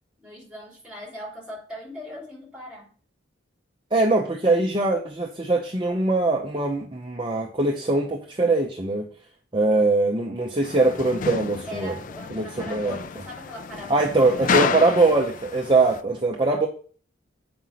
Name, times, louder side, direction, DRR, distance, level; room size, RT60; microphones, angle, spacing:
voice 1, 0.2-2.9 11.7-15.4, left 1 dB, 5° right, 3.4 m, -39 dB
voice 2, 3.9-9.1 9.5-11.9 12.3-13.0 13.9-16.7, right 2 dB, 25° right, 0.8 m, -22 dB
sound 1, 10.6-16.0, left 5 dB, 45° left, 0.4 m, -30 dB
8.0 x 5.2 x 5.8 m
head